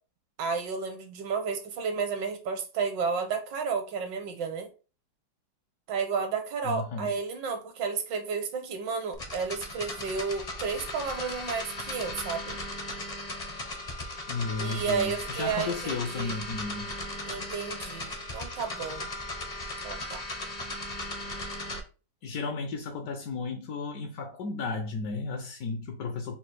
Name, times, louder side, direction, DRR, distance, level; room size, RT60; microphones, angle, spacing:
voice 1, 0.4-4.7 5.9-12.6 14.6-16.4 17.3-19.1 19.8-20.2, right 5 dB, 80° right, 1.6 m, -32 dB
voice 2, 6.6-7.1 14.3-16.9 22.2-26.4, left 4 dB, 70° left, 1.1 m, -34 dB
sound 1, 9.1-21.8, left 1 dB, 40° left, 0.5 m, -37 dB
4.1 x 2.4 x 4.5 m
omnidirectional pair, 1.9 m